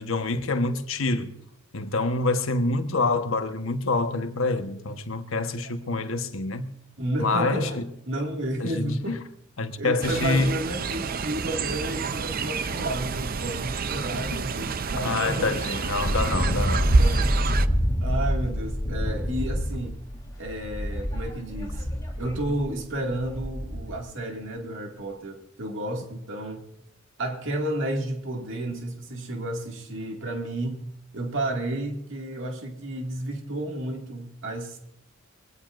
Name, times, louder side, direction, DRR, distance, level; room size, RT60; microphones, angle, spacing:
voice 1, 0.0-1.3 1.7-6.7 7.2-7.9 8.6-9.2 9.6-10.6 14.3-14.4 15.0-16.9, left 3 dB, 80° left, 1.3 m, -26 dB
voice 2, 7.0-7.8 8.1-9.2 9.8-15.5 17.0-17.4 18.0-20.0 20.4-21.9 22.2-26.6 27.2-30.8 31.1-34.8, right 1 dB, 65° right, 2.3 m, -31 dB
Fowl, 10.0-17.7, right 4 dB, 45° right, 0.6 m, -27 dB
Wind, 15.9-24.0, equal, 20° left, 4.0 m, -27 dB
23.0 x 17.0 x 2.6 m
head